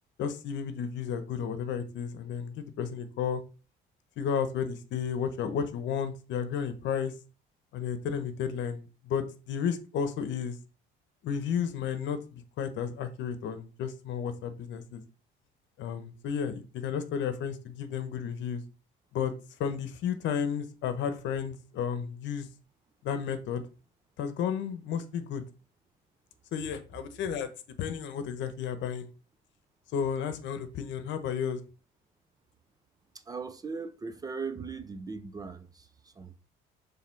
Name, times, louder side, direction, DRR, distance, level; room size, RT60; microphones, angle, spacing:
voice 1, 0.2-3.4 4.2-7.1 7.7-10.6 11.2-15.0 15.8-18.6 19.1-19.3 19.6-22.5 23.0-23.6 24.2-25.4 26.5-27.5 27.8-29.1 29.9-31.6, left 7 dB, 65° left, 0.9 m, -32 dB
voice 2, 33.3-36.4, right 5 dB, 20° right, 0.4 m, -39 dB
6.6 x 3.4 x 4.6 m
cardioid pair, 145°, 20 cm